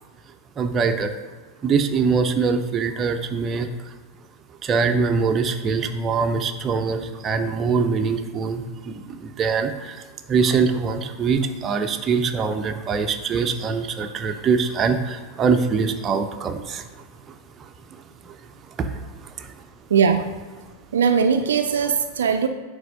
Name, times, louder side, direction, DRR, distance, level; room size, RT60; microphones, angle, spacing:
voice 1, 0.6-1.1 1.6-3.7 4.6-10.0 10.3-16.8 18.8-18.9, right 5 dB, 25° right, 6 dB, 0.7 m, -23 dB
voice 2, 19.9-20.2 20.9-22.5, right 6 dB, 65° right, 7 dB, 0.5 m, -19 dB
9.2 x 3.5 x 6.4 m, 1.4 s
figure-of-eight pair, 90°, 0 cm